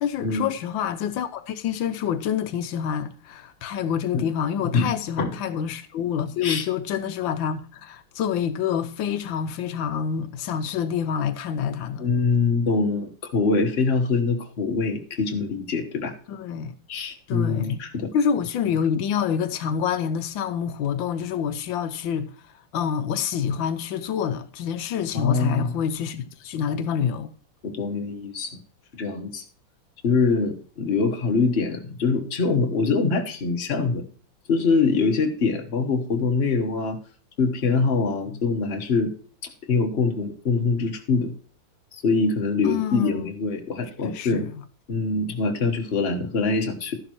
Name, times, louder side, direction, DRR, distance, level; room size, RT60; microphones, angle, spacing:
voice 1, 0.0-12.1 16.3-16.7 17.3-17.8 18.1-22.3 22.7-27.3 38.3-38.4 42.6-43.3 44.0-44.6, left 8 dB, 85° left, 1.4 m, -27 dB
voice 2, 12.0-16.1 16.9-18.1 25.1-25.7 27.6-28.6 29.0-29.4 30.0-34.0 34.5-37.0 37.4-39.1 39.7-41.3 41.9-44.5 44.9-47.0, left 4 dB, 35° left, 1.3 m, -24 dB
12.5 x 11.0 x 3.0 m
omnidirectional pair, 2.1 m